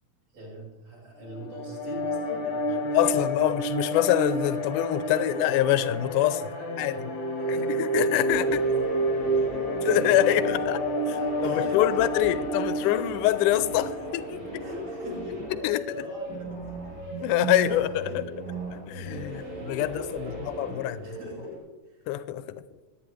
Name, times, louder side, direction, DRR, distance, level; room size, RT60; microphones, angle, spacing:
voice 1, 0.3-3.5 5.0-5.5 6.1-12.5 14.6-18.8 19.3-22.2, left 1 dB, 55° right, 6.9 m, -43 dB
sound 1, 1.3-14.6, right 1 dB, 55° left, 1.4 m, -29 dB
sound 2, 2.0-11.3, equal, 25° right, 1.2 m, -49 dB
voice 2, 3.0-6.4 6.8-6.9 7.7-8.5 9.9-10.8 11.4-14.6 15.6-16.1 17.2-18.0 18.9-21.0 22.1-22.6, left 13 dB, 80° left, 2.1 m, -25 dB
sound 3, 8.3-21.6, right 2 dB, 85° right, 7.8 m, -37 dB
27.0 x 9.4 x 3.3 m
omnidirectional pair, 3.8 m